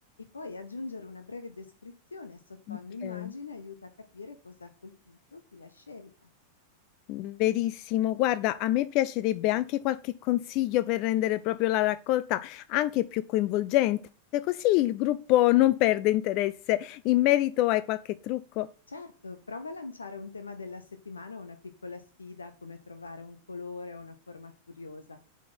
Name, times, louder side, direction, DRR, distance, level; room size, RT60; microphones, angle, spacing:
voice 1, 0.3-6.3 18.9-25.2, left 3 dB, 75° left, 8 dB, 0.6 m, -43 dB
voice 2, 2.7-3.3 7.1-14.0 14.3-18.7, left 15 dB, 40° left, 15 dB, 0.3 m, -26 dB
7.2 x 4.2 x 5.4 m, 0.39 s
figure-of-eight pair, 90°, 0 cm